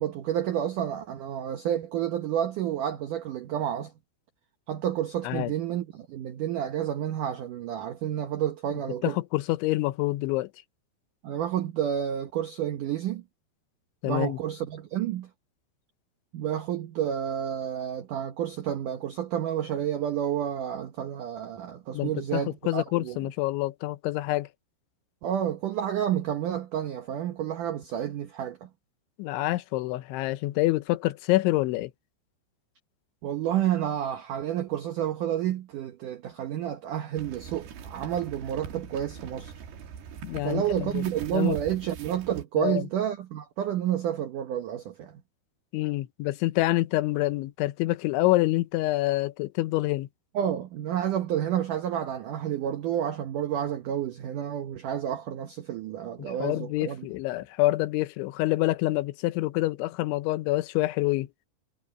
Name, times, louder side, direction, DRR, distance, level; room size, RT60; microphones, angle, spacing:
voice 1, 0.0-3.9 4.7-9.2 11.2-13.2 14.1-15.3 16.3-23.2 25.2-28.7 33.2-39.5 40.4-45.2 50.3-57.1, right 10 dB, 80° right, 1.8 m, -30 dB
voice 2, 9.0-10.5 14.0-14.4 21.9-24.5 29.2-31.9 40.2-41.0 41.3-41.6 42.6-42.9 45.7-50.1 56.2-61.3, left 18 dB, 85° left, 3.2 m, -27 dB
sound 1, 37.2-42.4, right 6 dB, 65° right, 4.1 m, -42 dB
omnidirectional pair, 5.3 m